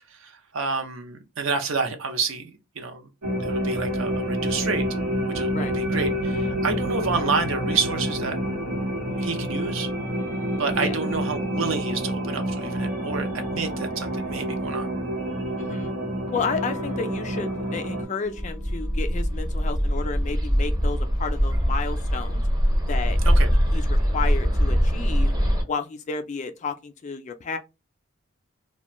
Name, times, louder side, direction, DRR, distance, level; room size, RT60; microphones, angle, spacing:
voice 1, 0.1-2.5 2.8-3.1 3.4-4.9 5.3-8.4 9.2-9.9 10.6-14.9 23.2-23.5, right 5 dB, 65° right, 0.5 m, -29 dB
sound 1, 3.2-18.0, equal, 85° right, 1.0 m, -28 dB
voice 2, 15.6-15.9 16.3-22.4 22.9-23.2 23.7-25.3 25.7-27.6, left 5 dB, 35° left, 0.3 m, -32 dB
Electric guitar / Strum, 16.3-21.6, left 2 dB, 45° right, 1.0 m, -42 dB
Bird, 18.3-25.6, equal, 15° right, 0.6 m, -22 dB
2.4 x 2.2 x 2.9 m
head